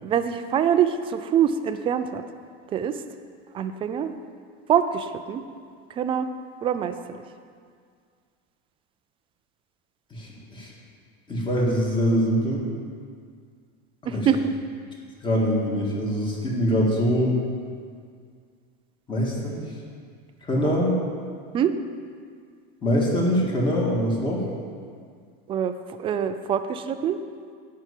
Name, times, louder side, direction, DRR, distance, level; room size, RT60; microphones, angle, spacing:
voice 1, 0.0-2.2 2.7-3.0 3.5-4.1 4.7-5.4 5.9-6.3 6.6-7.2 14.1-14.5 19.5-19.6 21.5-21.8 25.5-25.7 26.0-27.2, right 8 dB, 20° right, 9 dB, 0.3 m, -24 dB
voice 2, 10.1-10.7 11.3-12.6 14.1-14.3 15.2-17.4 19.1-19.7 20.5-20.9 22.8-24.4, equal, 15° left, -3 dB, 1.9 m, -23 dB
10.5 x 5.7 x 8.2 m, 2.1 s
cardioid pair, 160°, 29 cm